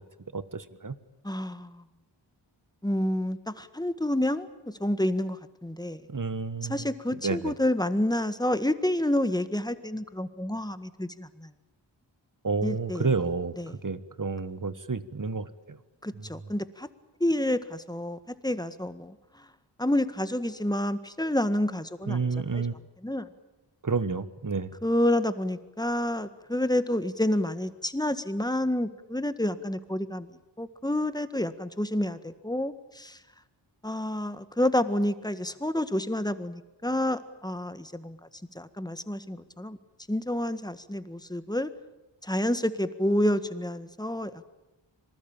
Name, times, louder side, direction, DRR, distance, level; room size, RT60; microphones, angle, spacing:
voice 1, 0.3-0.9 6.1-6.8 7.2-7.5 12.4-15.8 16.2-16.3 22.1-22.7 23.8-24.7, right 4 dB, 45° right, 14 dB, 1.5 m, -30 dB
voice 2, 1.2-1.8 2.8-6.0 6.7-11.5 12.6-13.1 13.6-13.7 16.0-16.9 17.2-19.5 19.8-22.6 23.0-23.3 24.8-30.3 30.6-33.2 33.8-38.2 38.6-39.8 40.1-41.7 42.2-44.5, left 1 dB, 10° left, 12 dB, 1.6 m, -29 dB
26.0 x 20.0 x 9.0 m, 1.0 s
wide cardioid pair, 60°, 46 cm